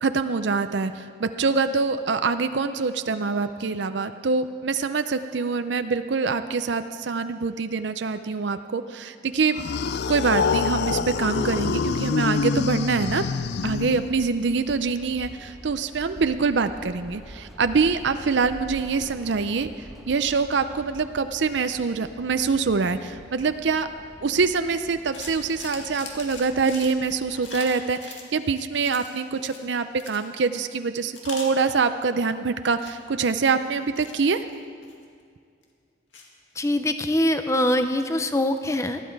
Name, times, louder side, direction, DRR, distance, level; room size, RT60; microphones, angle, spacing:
voice 1, 0.0-9.6 10.1-13.2 13.6-19.7 20.1-23.9 24.2-34.4, right 4 dB, 70° right, 10 dB, 0.5 m, -25 dB
sound 1, 9.5-14.4, left 5 dB, 60° left, 0.4 m, -26 dB
sound 2, 12.0-27.7, equal, ahead, 1.1 m, -46 dB
sound 3, 25.1-28.3 28.7-29.7 29.9-30.2 30.6-30.7 31.1-32.3 32.6-33.0 33.5-35.2 35.6-35.7 36.1-36.3, left 4 dB, 80° left, 2.1 m, -41 dB
voice 2, 36.6-39.0, left 1 dB, 15° left, 9 dB, 0.6 m, -23 dB
19.0 x 13.5 x 4.7 m, 2.2 s
head